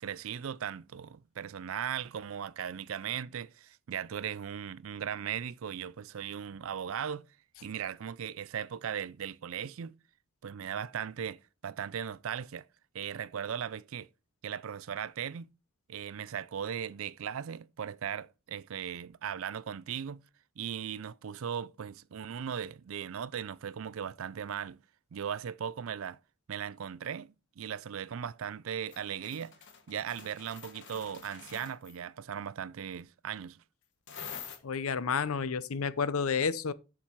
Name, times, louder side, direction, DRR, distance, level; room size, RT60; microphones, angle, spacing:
voice 1, 0.0-7.3 7.6-10.0 10.4-12.7 12.9-14.1 14.4-15.5 15.9-20.2 20.6-24.8 25.1-26.2 26.5-29.5 29.9-33.6, right 8 dB, 65° right, 0.4 m, -38 dB
sound 1, 28.9-32.0 34.1-34.6, left 6 dB, 55° left, 1.5 m, -47 dB
voice 2, 34.6-36.7, left 5 dB, 75° left, 0.7 m, -30 dB
7.4 x 7.0 x 4.5 m
head